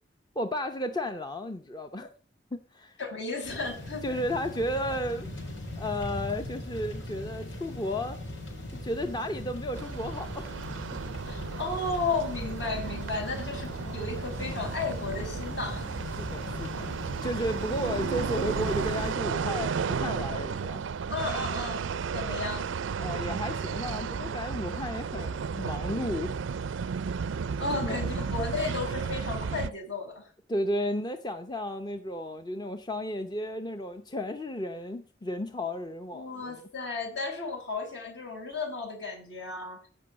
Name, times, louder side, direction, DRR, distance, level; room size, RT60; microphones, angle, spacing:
voice 1, 0.4-2.1 2.5-3.0 4.0-8.2 8.7-10.6 16.2-20.8 23.0-26.4 27.8-28.0 30.5-36.6, left 1 dB, 20° left, 7 dB, 0.7 m, -33 dB
voice 2, 3.0-4.2 11.3-15.8 21.1-22.7 27.6-30.3 36.1-39.8, left 3 dB, 65° left, 2 dB, 5.7 m, -34 dB
sound 1, 3.4-19.1, left 1 dB, 85° left, 4.4 m, -39 dB
sound 2, 9.7-29.7, right 6 dB, 85° right, 0.4 m, -33 dB
15.5 x 5.5 x 6.2 m, 0.41 s
head